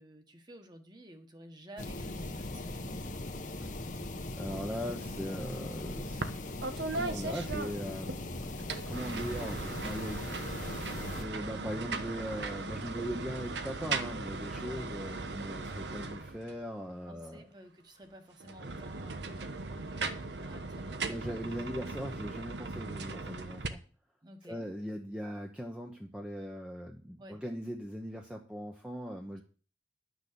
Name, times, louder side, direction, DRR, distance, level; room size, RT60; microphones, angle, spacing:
voice 1, 0.0-3.2 14.6-15.0 17.0-21.3 24.2-24.7 27.2-27.4, equal, 25° right, 5 dB, 1.5 m, -52 dB
sound 1, 1.8-11.2, left 2 dB, 45° left, 1.0 m, -39 dB
voice 2, 4.4-6.6 6.9-8.2 8.5-10.3 11.1-17.4 21.1-23.8 24.5-29.4, equal, 5° right, 1 dB, 0.9 m, -40 dB
sound 2, 6.2-6.4 6.6-8.2 8.6-16.6 18.4-23.7, right 3 dB, 80° right, 1.1 m, -38 dB
11.5 x 6.3 x 6.9 m, 0.39 s
head